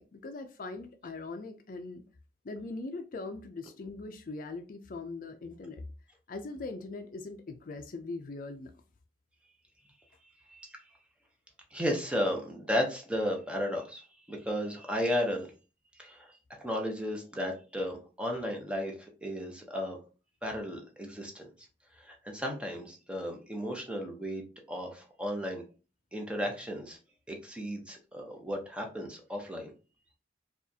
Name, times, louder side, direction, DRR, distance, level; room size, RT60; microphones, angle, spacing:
voice 1, 0.0-2.0 2.4-5.8 6.3-8.7, left 3 dB, 50° left, 0.4 m, -41 dB
voice 2, 11.7-15.5 16.0-16.3 16.6-18.9 19.2-20.0 20.4-21.5 22.0-24.4 24.7-25.6 26.1-27.0 27.3-29.7, equal, 5° right, 0.8 m, -34 dB
4.9 x 2.4 x 2.7 m
head